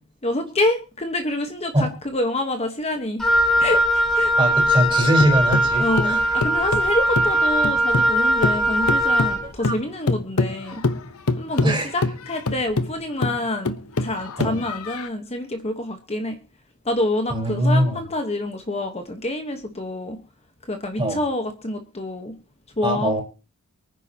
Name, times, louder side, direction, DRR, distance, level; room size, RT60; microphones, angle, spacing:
voice 1, 0.2-3.2 3.6-4.4 5.8-10.8 11.4-16.4 16.8-20.2 20.7-22.3 22.8-23.2, left 1 dB, 30° left, 1.2 m, -27 dB
Wind instrument woodwind instrument, 3.2-9.4, equal, 5° left, 5.0 m, -20 dB
voice 2, 4.4-6.2 9.6-9.8 11.6-11.9 14.4-14.6 17.3-18.0 21.0-21.2 22.8-23.2, right 1 dB, 25° right, 4.3 m, -21 dB
sound 1, 4.7-8.2 8.4-15.1, left 3 dB, 75° left, 1.0 m, -26 dB
24.0 x 9.9 x 2.9 m
head